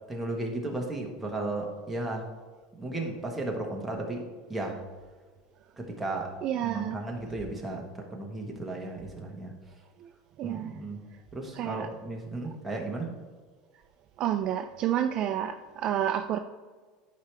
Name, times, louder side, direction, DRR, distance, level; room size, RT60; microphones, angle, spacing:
voice 1, 0.1-2.3 2.7-4.8 5.8-9.5 10.4-11.0 11.3-13.1, right 2 dB, 5° right, -1 dB, 1.3 m, -35 dB
voice 2, 6.4-7.0 10.0-10.1 10.4-10.8 11.5-11.9 14.2-16.4, right 10 dB, 40° right, 7 dB, 0.4 m, -29 dB
11.0 x 4.7 x 3.3 m, 1.5 s
supercardioid pair, 155°, 2 cm